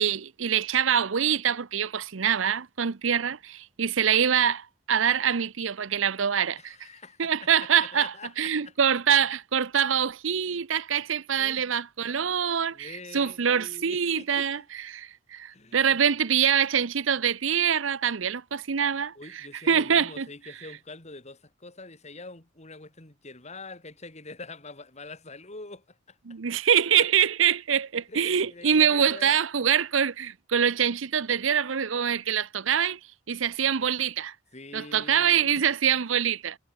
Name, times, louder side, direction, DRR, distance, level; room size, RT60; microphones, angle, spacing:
voice 1, 0.0-6.8 7.2-20.3 26.2-33.0 33.3-34.3 34.7-36.6, right 8 dB, 75° right, 0.7 m, -25 dB
voice 2, 6.6-8.7 9.1-9.2 11.4-11.6 12.7-14.5 15.5-16.0 19.2-26.2 28.1-29.4 34.5-35.7, left 3 dB, 35° left, 3.1 m, -44 dB
head